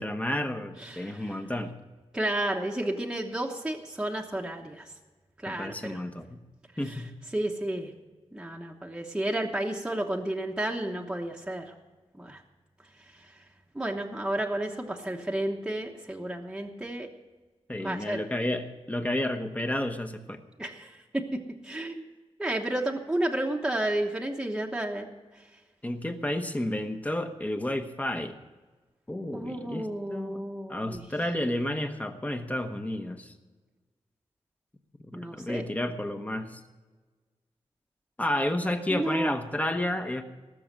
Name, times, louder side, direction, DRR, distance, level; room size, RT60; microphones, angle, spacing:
voice 1, 0.0-1.7 5.5-6.4 6.8-7.1 17.7-20.4 25.8-28.4 29.1-33.3 35.1-36.6 38.2-40.2, left 1 dB, 15° left, 7 dB, 1.0 m, -31 dB
voice 2, 0.8-1.4 2.1-4.9 5.4-6.0 6.8-7.0 7.3-7.9 8.3-11.7 12.1-12.4 13.1-13.3 13.7-17.1 17.8-18.2 20.6-22.0 22.4-25.1 25.3-25.4 29.3-31.1 35.1-35.6 38.9-39.3, right 1 dB, 10° right, 0 dB, 1.1 m, -32 dB
18.5 x 7.0 x 7.5 m, 1.3 s
wide cardioid pair, 150°, 11 cm